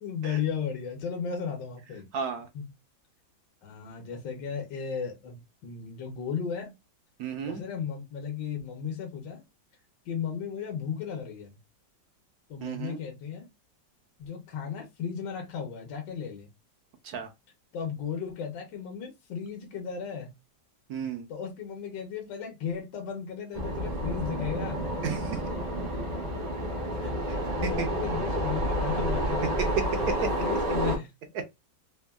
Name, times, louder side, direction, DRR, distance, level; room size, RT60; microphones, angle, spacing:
voice 1, 0.0-2.1 2.5-2.6 3.6-6.7 7.4-9.4 10.0-11.6 12.5-13.5 14.2-16.5 17.7-20.3 21.3-24.8 27.0-29.5 29.9-31.1, left 7 dB, 70° left, 1.4 m, -35 dB
voice 2, 2.1-2.5 7.2-7.6 12.6-13.0 17.0-17.3 20.9-21.3 25.0-25.4 27.6-27.9 29.9-30.1, right 6 dB, 70° right, 0.9 m, -33 dB
sound 1, 23.5-31.0, equal, 50° right, 0.5 m, -30 dB
3.4 x 2.2 x 2.2 m
omnidirectional pair, 2.0 m